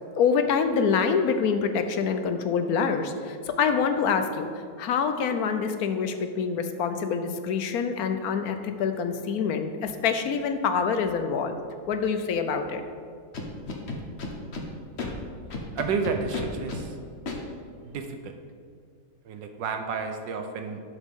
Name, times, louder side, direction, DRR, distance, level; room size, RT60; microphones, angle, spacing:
voice 1, 0.2-4.5 4.8-11.6 11.9-12.8, left 6 dB, 65° left, 8 dB, 1.1 m, -26 dB
Scratching (performance technique), 13.3-14.6 15.0-15.1 15.5-16.8 17.3-17.4, left 3 dB, 40° left, 1.2 m, -33 dB
voice 2, 15.7-16.9 17.8-18.3 19.2-20.8, right 5 dB, 85° right, 6 dB, 1.6 m, -31 dB
11.5 x 7.1 x 3.7 m, 2.2 s
omnidirectional pair, 1.9 m